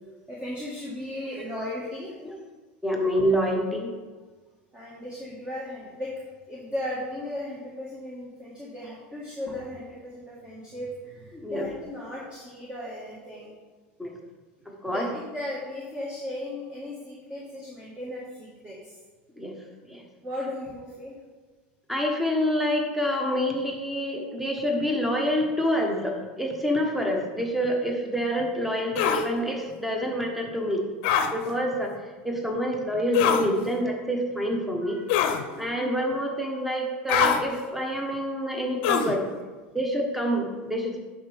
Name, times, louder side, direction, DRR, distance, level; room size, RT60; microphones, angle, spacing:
voice 1, 0.3-2.1 2.9-3.1 4.7-6.1 6.5-13.5 14.9-19.0 20.2-21.2 34.8-35.7, left 1 dB, 20° right, -5 dB, 1.7 m, -36 dB
voice 2, 2.8-3.9 11.3-11.6 14.0-14.1 14.8-15.1 19.4-19.5 19.9-20.0 21.9-30.8 31.3-31.9 32.2-35.0 35.6-39.3 39.7-41.0, equal, ahead, 1 dB, 1.3 m, -27 dB
sound 1, 29.0-29.2 31.0-31.3 33.1-33.5 35.1-35.4 37.1-37.4 38.8-39.2, left 8 dB, 65° left, 0.7 m, -22 dB
10.5 x 4.6 x 3.5 m, 1.4 s
hypercardioid pair, 100°, 6 cm